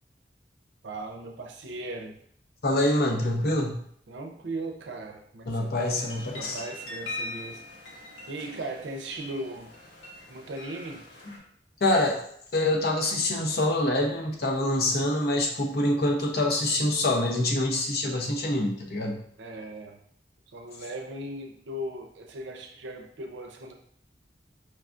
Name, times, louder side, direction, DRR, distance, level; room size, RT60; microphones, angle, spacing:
voice 1, 0.8-2.2 4.1-6.1 6.3-7.6 8.3-9.7 10.3-11.0 19.4-20.0 20.5-23.7, right 1 dB, 85° right, 3 dB, 0.5 m, -38 dB
voice 2, 2.6-3.8 5.5-6.6 11.8-12.2 12.5-19.2, left 1 dB, 55° left, 1 dB, 0.6 m, -25 dB
sound 1, 6.0-11.4, left 2 dB, 90° left, 1.0 m, -41 dB
4.7 x 2.3 x 2.4 m, 0.66 s
head